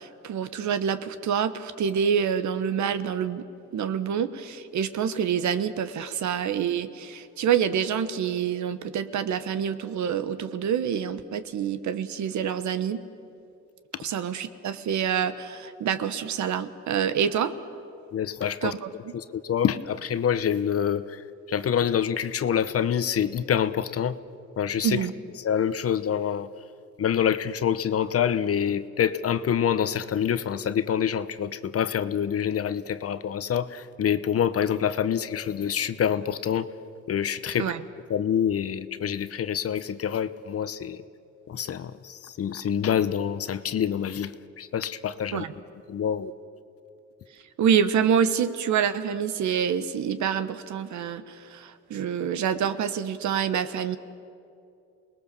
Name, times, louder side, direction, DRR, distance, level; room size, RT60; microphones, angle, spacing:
voice 1, 0.0-3.4 3.7-13.0 14.0-17.5 18.6-19.1 24.8-25.1 37.6-37.8 45.3-45.5 47.6-54.0, right 8 dB, 70° right, 12 dB, 1.3 m, -27 dB
voice 2, 18.1-18.8 19.1-24.2 24.6-25.1 25.4-26.5 27.0-36.7 37.1-37.7 38.1-41.0 41.5-45.4 45.9-46.3, left 8 dB, 50° left, 14 dB, 0.9 m, -26 dB
28.5 x 20.0 x 7.0 m, 2.6 s
cardioid pair, 90°, 30 cm